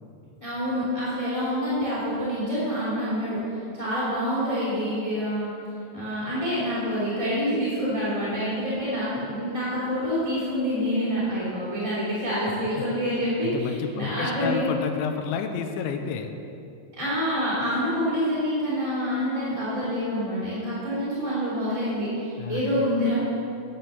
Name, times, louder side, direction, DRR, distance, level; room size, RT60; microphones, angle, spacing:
voice 1, 0.4-5.5 5.9-14.7 17.0-23.1, equal, 10° left, -11 dB, 2.4 m, -27 dB
voice 2, 13.4-16.3 22.4-22.8, left 6 dB, 80° left, 6 dB, 3.1 m, -30 dB
10.5 x 8.0 x 6.9 m, 2.6 s
omnidirectional pair, 5.4 m